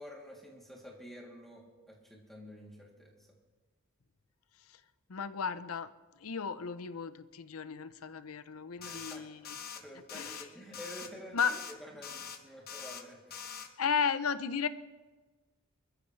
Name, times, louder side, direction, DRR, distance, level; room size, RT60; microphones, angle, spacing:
voice 1, 0.0-3.3 8.8-9.3 9.7-13.6, equal, ahead, -3 dB, 2.9 m, -49 dB
voice 2, 5.1-5.9 6.2-9.6 10.1-10.4 11.3-11.5 13.8-14.7, left 6 dB, 75° left, 13 dB, 0.7 m, -34 dB
sound 1, 8.8-9.2 9.4-9.8 10.1-10.4 10.7-11.1 11.4-11.7 12.0-12.4 12.7-13.0 13.3-13.7, left 7 dB, 45° left, 1.2 m, -43 dB
25.5 x 14.5 x 3.3 m, 1.3 s
head